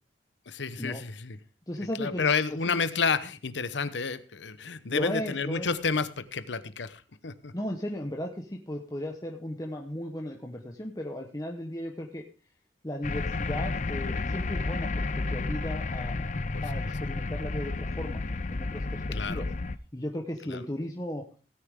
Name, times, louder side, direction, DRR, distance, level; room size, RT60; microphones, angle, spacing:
voice 1, 0.5-1.4 2.0-7.5 16.5-16.6 19.1-19.4 20.5-20.6, left 5 dB, 80° left, 14 dB, 0.9 m, -30 dB
voice 2, 1.7-2.3 2.7-2.8 4.9-5.7 7.5-12.2 12.8-16.3 16.6-19.0 19.3-19.5 19.9-21.2, left 1 dB, 20° left, 1 dB, 1.0 m, -36 dB
Heavy spaceship fly-by, 13.0-19.8, left 3 dB, 40° left, 0.5 m, -31 dB
16.5 x 9.7 x 3.6 m, 0.37 s
head